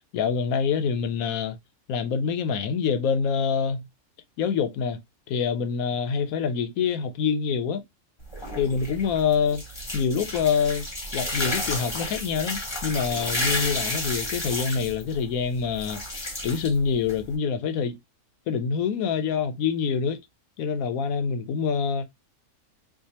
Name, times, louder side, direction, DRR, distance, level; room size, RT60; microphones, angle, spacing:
voice 1, 0.1-1.6 1.9-3.9 4.4-5.0 5.3-7.8 8.6-9.6 9.9-10.8 11.1-18.0 18.5-20.2 20.6-22.0, left 6 dB, 75° left, 1.1 m, -26 dB
sound 1, 8.2-17.3, left 1 dB, 20° left, 1.0 m, -32 dB
4.7 x 2.4 x 2.8 m
omnidirectional pair, 1.5 m